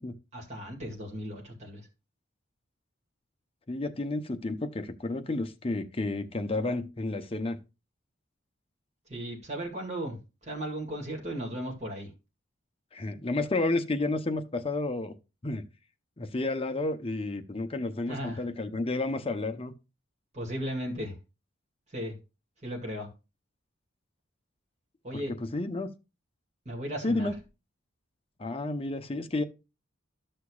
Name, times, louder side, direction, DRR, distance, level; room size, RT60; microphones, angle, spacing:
voice 1, 0.3-1.8 9.1-10.2 10.4-12.1 18.1-18.4 20.3-21.1 21.9-22.1 22.6-23.1 25.0-25.3 26.7-27.3, equal, 35° right, 2.0 m, -36 dB
voice 2, 3.7-7.6 12.9-15.1 15.4-15.6 16.2-19.7 25.3-25.9 27.0-27.4 28.4-29.4, left 2 dB, 30° left, 0.7 m, -31 dB
13.0 x 6.6 x 2.3 m
head